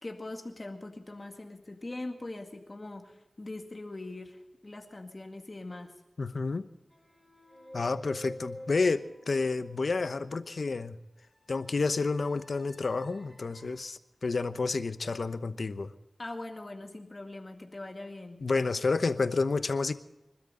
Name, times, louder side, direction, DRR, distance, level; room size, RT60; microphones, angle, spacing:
voice 1, 0.0-5.9 16.2-18.4, left 2 dB, 40° left, 4 dB, 2.0 m, -42 dB
voice 2, 6.2-6.7 7.7-11.0 11.5-15.9 18.4-19.9, left 3 dB, 75° left, 12 dB, 0.9 m, -30 dB
sound 1, 6.9-10.2 11.3-13.8, left 1 dB, ahead, 6.0 m, -48 dB
26.5 x 13.0 x 3.9 m, 0.96 s
wide cardioid pair, 65°, 0 cm